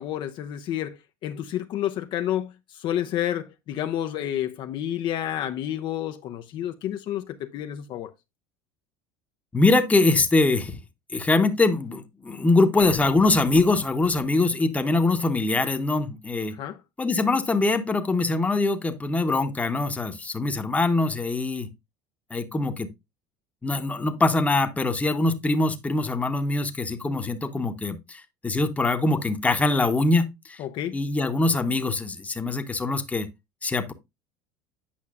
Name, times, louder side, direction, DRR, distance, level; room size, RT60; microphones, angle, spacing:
voice 1, 0.0-8.1 16.6-16.8 30.6-31.0, left 11 dB, 55° left, 0.5 m, -30 dB
voice 2, 9.5-10.8 11.1-16.5 17.0-21.7 22.3-22.9 23.6-30.6 30.9-33.3 33.6-33.9, left 2 dB, 15° left, 0.9 m, -23 dB
8.6 x 5.5 x 2.4 m
supercardioid pair, 100°, 10 cm